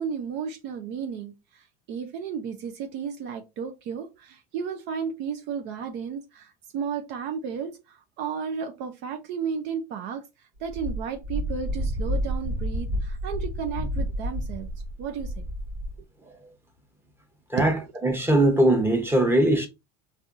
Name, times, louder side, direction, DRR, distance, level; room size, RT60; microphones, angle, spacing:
voice 1, 0.0-1.3 1.9-10.2 10.6-14.7 15.0-15.3 17.6-17.8, right 6 dB, 65° right, 0.6 m, -33 dB
Wind, 10.6-16.0, equal, 90° right, 1.1 m, -30 dB
voice 2, 18.0-19.7, right 1 dB, 10° right, 0.9 m, -20 dB
3.4 x 2.6 x 2.5 m
supercardioid pair, 105°, 20 cm